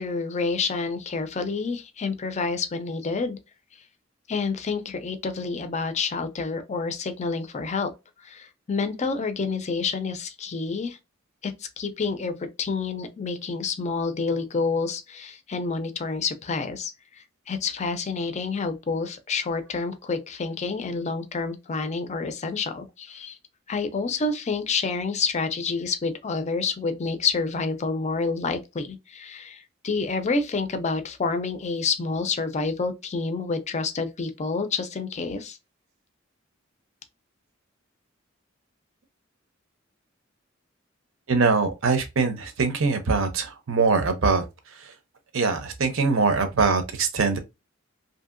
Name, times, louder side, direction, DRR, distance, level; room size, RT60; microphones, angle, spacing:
voice 1, 0.0-3.4 4.3-7.9 8.2-11.0 11.4-16.9 17.2-23.4 23.7-35.6, left 4 dB, 35° left, 0.4 m, -28 dB
voice 2, 41.3-44.5 44.8-44.9 45.3-47.4, right 4 dB, 75° right, 0.7 m, -23 dB
2.7 x 2.7 x 2.5 m
head